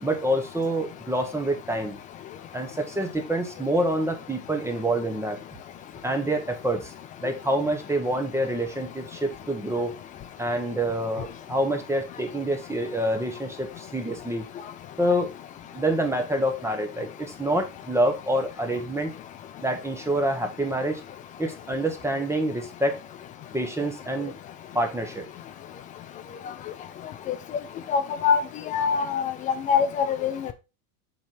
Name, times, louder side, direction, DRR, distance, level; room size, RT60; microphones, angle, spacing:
voice 1, 0.0-2.0 2.5-5.4 6.0-6.9 7.2-9.9 10.4-14.4 15.0-15.3 15.7-19.1 19.6-21.0 21.4-23.0 23.5-24.4 24.7-25.3, right 1 dB, 5° right, 4 dB, 0.9 m, -27 dB
voice 2, 27.9-28.4 28.7-29.3 29.7-30.3, left 6 dB, 20° left, 10 dB, 0.3 m, -23 dB
7.3 x 3.7 x 4.5 m, 0.29 s
supercardioid pair, 125°, 45 cm